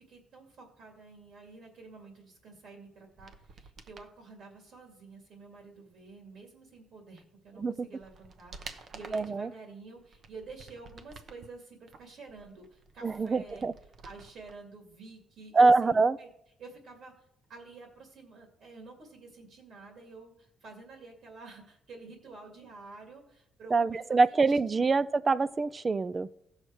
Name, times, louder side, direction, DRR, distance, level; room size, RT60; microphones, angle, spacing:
voice 1, 0.0-13.7 14.0-15.9 16.2-16.3 16.6-17.2 17.5-24.4, right 3 dB, 65° right, 2 dB, 2.3 m, -49 dB
sound 1, 3.1-4.1 7.2-7.3 7.8-9.4 10.0-11.5 11.9-14.6 14.8-14.9, right 4 dB, 45° right, 0.9 m, -50 dB
voice 2, 7.6-7.9 9.1-9.5 13.0-13.7 15.5-16.2 23.7-26.3, right 3 dB, 25° right, 18 dB, 0.4 m, -25 dB
16.5 x 6.5 x 4.6 m, 0.76 s
cardioid pair, 140°, 0 cm